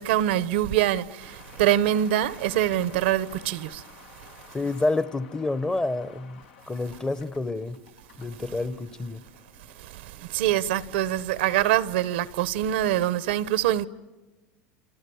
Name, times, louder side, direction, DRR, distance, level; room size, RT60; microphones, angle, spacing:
voice 1, 0.0-4.3 9.7-13.9, right 12 dB, 85° right, 0.9 m, -25 dB
sound 1, 1.2-10.8, left 6 dB, 85° left, 2.0 m, -52 dB
voice 2, 4.5-7.8 8.2-9.2, left 2 dB, 15° left, 0.8 m, -29 dB
28.5 x 26.0 x 7.1 m
supercardioid pair, 120°, 6 cm